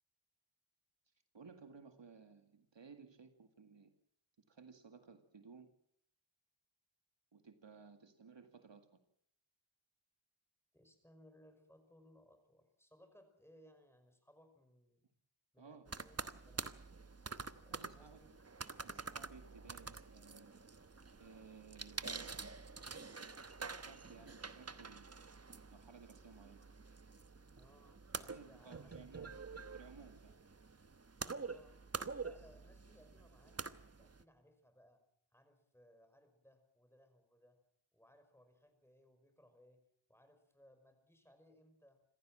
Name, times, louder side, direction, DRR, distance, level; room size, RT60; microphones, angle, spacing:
voice 1, 1.3-3.9 4.4-5.7 7.3-8.9 15.6-15.9 17.7-18.2 18.8-20.6 21.2-22.6 23.2-25.1 25.7-26.6 28.3-29.3 29.7-30.4, right 5 dB, 60° right, 7 dB, 2.1 m, -58 dB
voice 2, 10.7-15.0 15.5-16.9 17.5-18.6 27.6-29.3 30.3-30.4 31.4-31.8 32.2-35.0 35.3-37.6 37.9-42.0, equal, 5° left, 7 dB, 5.5 m, -66 dB
sound 1, 15.9-34.2, right 4 dB, 30° right, 1.1 m, -47 dB
27.0 x 15.0 x 7.6 m, 0.70 s
wide cardioid pair, 70°, 50 cm